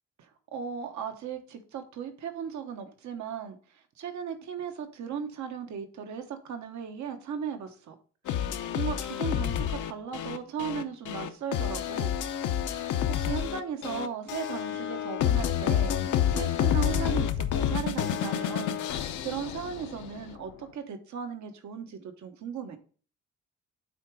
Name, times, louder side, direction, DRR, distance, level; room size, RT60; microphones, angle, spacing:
voice 1, 0.5-7.9 8.8-12.1 12.7-18.8 19.2-22.8, right 7 dB, 70° right, 7 dB, 1.3 m, -37 dB
sound 1, 8.3-20.2, left 10 dB, 80° left, 0.9 m, -29 dB
8.3 x 3.9 x 4.7 m, 0.41 s
cardioid pair, 90°, 30 cm